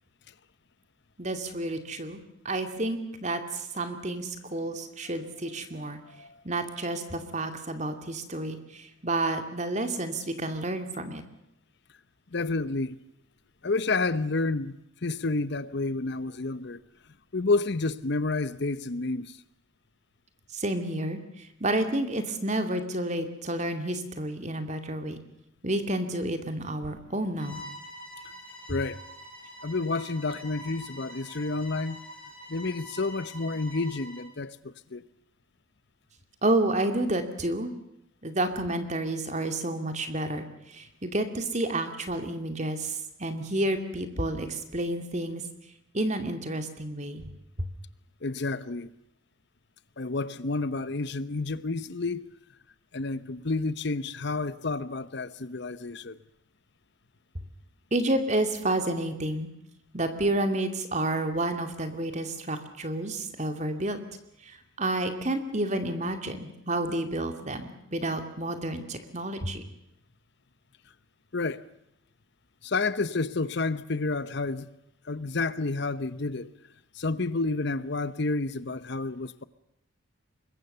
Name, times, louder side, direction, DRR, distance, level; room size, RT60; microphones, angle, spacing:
voice 1, 1.2-6.0 6.4-11.2 20.5-25.2 25.6-27.6 36.4-37.7 38.2-45.4 45.9-47.3 47.6-47.7 57.9-59.5 59.9-64.0 64.4-69.6, right 1 dB, 35° right, 2.5 m, -30 dB
voice 2, 6.1-6.4 12.3-13.0 13.6-14.8 15.0-16.8 17.3-19.4 28.7-29.0 29.6-32.0 32.5-35.0 48.2-48.9 50.0-52.3 52.9-56.2 71.3-71.7 72.6-74.7 75.0-76.5 76.9-79.4, left 3 dB, 55° left, 0.8 m, -30 dB
Bowed string instrument, 27.4-34.3, equal, 5° left, 7.3 m, -45 dB
25.0 x 21.5 x 6.8 m
head